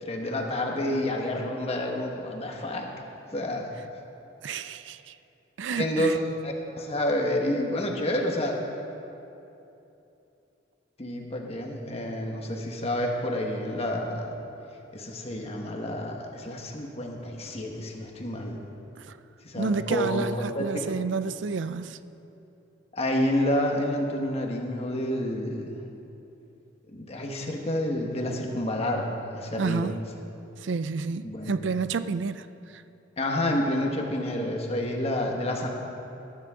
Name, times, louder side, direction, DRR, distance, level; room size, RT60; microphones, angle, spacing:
voice 1, 0.0-2.9 3.3-3.7 5.7-6.2 6.4-8.5 11.0-14.3 14.9-18.6 19.4-20.9 22.9-25.7 26.9-29.9 31.2-31.6 33.2-35.7, left 1 dB, 35° left, 1.5 m, -29 dB
voice 2, 4.4-5.2 5.6-6.2 19.0-19.2 19.6-22.0 29.6-30.0 30.6-32.8, right 4 dB, 80° right, 0.4 m, -30 dB
20.5 x 11.5 x 3.8 m
head